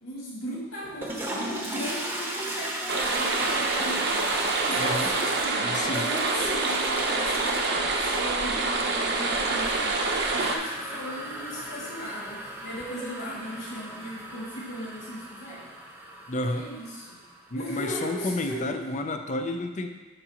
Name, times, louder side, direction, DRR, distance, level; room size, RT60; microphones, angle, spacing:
voice 1, 0.0-4.2 4.7-15.6 16.5-17.2 17.5-18.8, equal, 85° left, -7 dB, 2.4 m, -37 dB
Toilet flush, 0.8-17.6, right 1 dB, 10° right, 0.8 m, -37 dB
sound 1, 2.9-10.6, right 3 dB, 55° right, 0.7 m, -26 dB
voice 2, 4.8-5.1 5.6-6.1 16.3-16.6 17.5-19.9, left 2 dB, 35° left, 5 dB, 0.5 m, -30 dB
8.7 x 5.9 x 2.9 m, 1.3 s
head